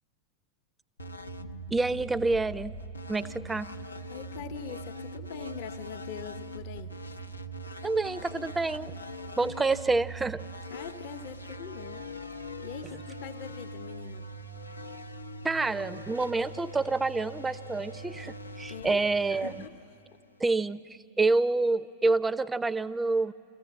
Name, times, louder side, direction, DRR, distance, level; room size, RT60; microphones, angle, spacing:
sound 1, 1.0-20.5, right 1 dB, 85° left, 0.6 m, -42 dB
voice 1, 1.7-2.7 3.1-3.7 7.8-8.9 9.4-10.4 15.4-19.5 20.4-20.8 21.2-23.3, right 3 dB, 10° right, 17 dB, 0.5 m, -27 dB
voice 2, 4.1-7.0 10.7-12.1 12.6-14.3 18.7-19.0 19.3-19.8, left 7 dB, 50° left, 9 dB, 0.8 m, -42 dB
28.0 x 14.5 x 8.6 m, 2.7 s
figure-of-eight pair, 90°, 0 cm